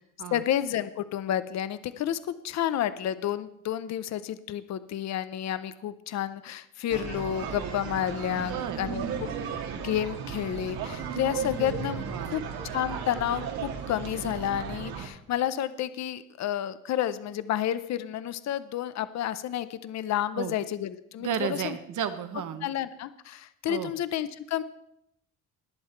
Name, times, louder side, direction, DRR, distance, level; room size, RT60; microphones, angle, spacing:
voice 1, 0.3-9.3 9.8-12.4 12.7-21.8 22.6-24.6, left 11 dB, 45° left, 14 dB, 0.6 m, -30 dB
sound 1, 6.9-15.1, right 6 dB, 65° right, 1.9 m, -35 dB
voice 2, 8.3-8.8 12.0-12.4 20.3-20.5 21.2-22.7 23.7-23.9, right 8 dB, 50° right, 10 dB, 1.2 m, -33 dB
19.5 x 7.7 x 4.5 m, 0.77 s
cardioid pair, 150°, 38 cm